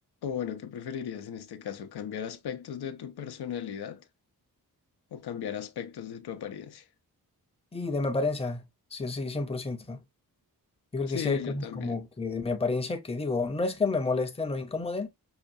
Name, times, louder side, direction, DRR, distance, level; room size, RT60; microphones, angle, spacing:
voice 1, 0.2-4.0 5.1-6.9 11.1-12.0, left 8 dB, 85° left, 0.6 m, -36 dB
voice 2, 7.7-8.6 8.9-10.0 10.9-15.1, left 3 dB, 15° left, 0.6 m, -30 dB
5.6 x 2.3 x 2.6 m
wide cardioid pair, 140°, 38 cm